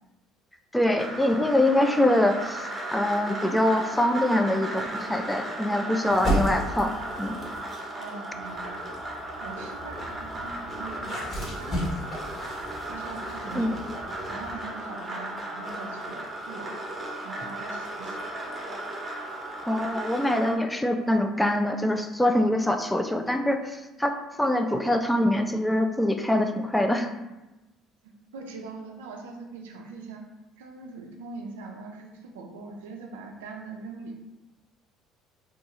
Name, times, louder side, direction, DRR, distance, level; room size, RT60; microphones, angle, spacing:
voice 1, 0.7-6.9 7.2-7.4 13.5-13.7 19.6-27.1, left 1 dB, 5° left, 6 dB, 0.3 m, -24 dB
sound 1, 1.0-20.6, right 1 dB, 25° right, 0.8 m, -36 dB
sound 2, 6.1-7.7 8.3-14.6, equal, 40° left, 1.1 m, -34 dB
voice 2, 8.0-9.0 9.4-12.3 12.9-13.8 14.3-16.9 17.2-18.6 28.3-30.2 30.6-34.2, right 4 dB, 85° right, 2 dB, 0.4 m, -42 dB
2.7 x 2.3 x 3.0 m, 1.0 s
hypercardioid pair, 65°, 0 cm